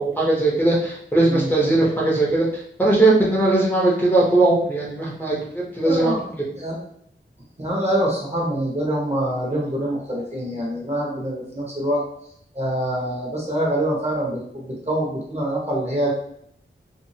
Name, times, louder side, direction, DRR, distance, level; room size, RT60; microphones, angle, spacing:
voice 1, 0.0-6.1, right 2 dB, 10° left, -7 dB, 0.7 m, -19 dB
voice 2, 5.8-6.3 6.6-6.8 7.6-12.0 12.5-16.1, right 1 dB, 30° right, -4 dB, 1.0 m, -25 dB
2.7 x 2.4 x 2.7 m, 0.68 s
wide cardioid pair, 70°, 20 cm